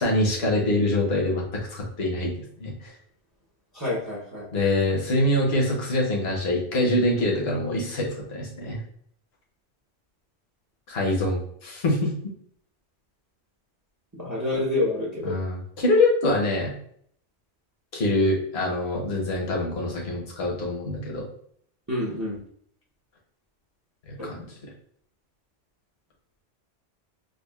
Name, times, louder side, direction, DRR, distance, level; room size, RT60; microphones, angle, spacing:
voice 1, 0.0-2.3 2.6-2.9 4.5-8.8 10.9-12.1 15.2-16.7 17.9-21.3 24.1-24.4, left 1 dB, 60° left, -1 dB, 1.2 m, -24 dB
voice 2, 3.7-4.5 14.2-15.4 21.9-22.4 24.2-24.3, left 2 dB, 15° right, -5 dB, 0.8 m, -27 dB
5.0 x 2.4 x 2.3 m, 0.63 s
omnidirectional pair, 1.2 m